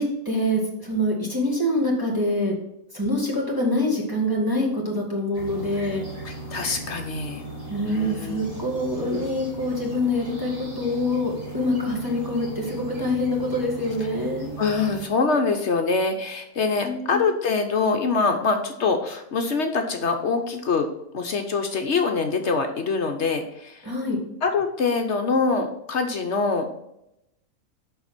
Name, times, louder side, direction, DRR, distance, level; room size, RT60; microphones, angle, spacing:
voice 1, 0.0-2.5 2.9-6.0 7.7-14.5 16.8-17.2 23.8-24.2, left 1 dB, 15° right, -4 dB, 2.1 m, -25 dB
sound 1, 5.3-15.0, right 3 dB, 45° right, 3.2 m, -37 dB
voice 2, 6.2-7.4 7.9-8.4 14.6-20.9 21.1-23.9 24.4-26.7, left 4 dB, 60° left, 5 dB, 1.1 m, -24 dB
6.9 x 5.6 x 6.0 m, 0.84 s
omnidirectional pair, 1.4 m